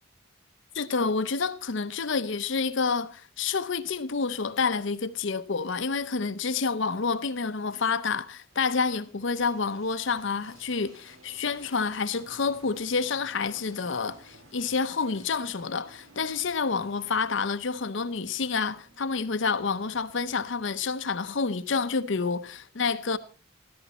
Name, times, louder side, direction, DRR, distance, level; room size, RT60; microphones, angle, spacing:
voice 1, 0.7-23.2, left 4 dB, 60° left, 0.7 m, -28 dB
sound 1, 8.5-20.8, right 1 dB, 85° right, 2.8 m, -55 dB
14.0 x 13.0 x 4.2 m
head